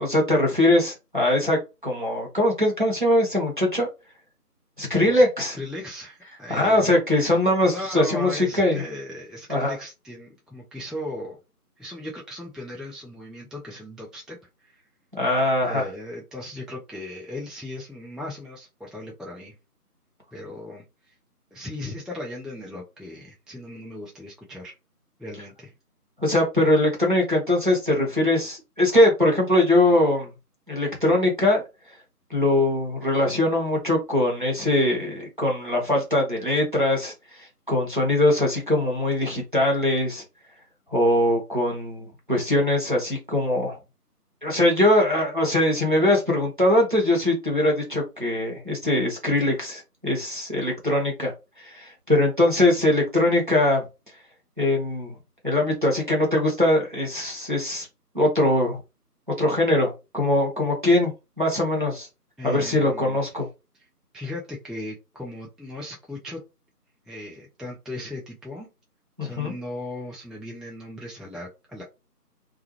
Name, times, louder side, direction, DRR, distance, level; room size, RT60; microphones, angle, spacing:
voice 1, 0.0-3.9 4.8-5.6 6.5-8.8 9.5-9.7 15.2-15.9 26.2-30.3 30.7-31.6 32.3-37.1 37.7-40.2 40.9-43.8 44.4-51.3 51.6-53.8 54.6-55.1 55.4-57.9 58.1-58.8 59.4-61.1 61.4-62.1 62.4-63.5 69.2-69.5, left 1 dB, 30° right, -1 dB, 0.7 m, -21 dB
voice 2, 5.5-11.4 11.8-14.4 14.6-14.8 15.6-19.5 20.3-21.1 21.5-24.8 25.2-25.7 62.4-63.2 64.1-66.4 67.1-68.7 69.2-71.8, left 1 dB, ahead, -3 dB, 0.4 m, -37 dB
2.3 x 2.2 x 2.9 m, 0.27 s
figure-of-eight pair, 165°, 48 cm